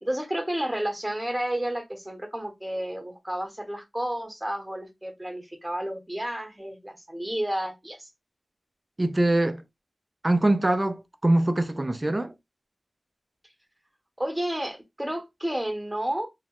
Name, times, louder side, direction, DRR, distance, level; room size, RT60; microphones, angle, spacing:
voice 1, 0.0-8.1 14.2-16.3, right 1 dB, 15° right, 0.9 m, -31 dB
voice 2, 9.0-9.6 10.2-12.3, right 1 dB, 30° right, 0.4 m, -23 dB
2.8 x 2.1 x 3.0 m
wide cardioid pair, 60°, 0 cm